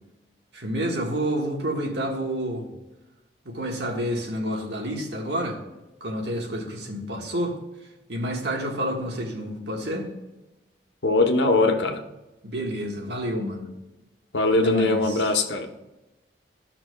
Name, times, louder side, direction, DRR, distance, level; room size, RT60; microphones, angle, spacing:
voice 1, 0.5-2.7 3.4-5.6 6.0-7.6 8.1-10.1 12.4-13.7 14.6-15.3, equal, 70° right, 0 dB, 1.6 m, -29 dB
voice 2, 11.0-12.0 14.3-15.7, left 2 dB, 80° left, 5 dB, 1.0 m, -21 dB
14.5 x 5.9 x 2.3 m, 1.0 s
head